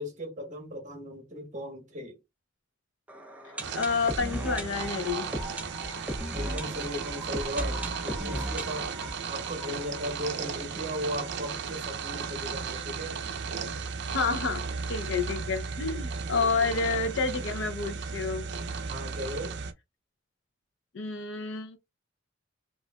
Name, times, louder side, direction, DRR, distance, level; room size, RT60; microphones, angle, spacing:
voice 1, 0.0-2.2 6.3-8.9 9.3-13.2 16.4-16.7 18.9-19.5, equal, 40° right, 1.1 m, -37 dB
sound 1, 3.1-10.8 11.1-11.2 11.4-11.5 12.0-12.1, right 1 dB, 10° right, 0.5 m, -37 dB
sound 2, 3.6-19.7, right 5 dB, 60° right, 0.5 m, -35 dB
voice 2, 3.7-5.3 14.1-18.4 20.9-21.8, left 4 dB, 70° left, 0.6 m, -29 dB
4.8 x 2.4 x 2.2 m
head